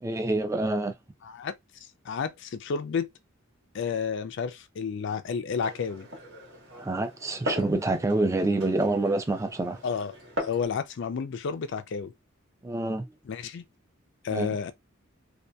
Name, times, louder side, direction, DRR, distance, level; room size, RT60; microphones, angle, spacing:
voice 1, 0.0-0.9 6.8-9.8 12.6-13.1 14.3-14.5, right 2 dB, 15° right, 0.4 m, -27 dB
voice 2, 2.1-3.1 3.7-6.1 9.8-10.1 10.4-12.1 13.3-13.6 14.2-14.7, left 6 dB, 60° left, 0.4 m, -31 dB
Glass, 5.5-10.7, left 1 dB, 75° right, 1.3 m, -39 dB
2.7 x 2.3 x 2.2 m
head